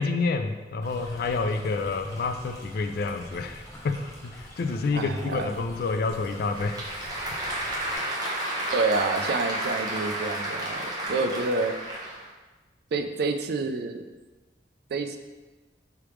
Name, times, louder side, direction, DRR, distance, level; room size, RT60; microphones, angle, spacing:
voice 1, 0.0-6.8, left 4 dB, 55° left, 7 dB, 0.3 m, -28 dB
Stream, 0.8-8.0, equal, 20° left, 0.7 m, -45 dB
voice 2, 4.9-5.5 8.7-11.8 12.9-14.0 14.9-15.2, right 3 dB, 60° right, 8 dB, 0.3 m, -28 dB
Applause / Crowd, 6.1-12.3, right 1 dB, 20° right, 0.8 m, -32 dB
4.7 x 3.4 x 3.1 m, 1.2 s
head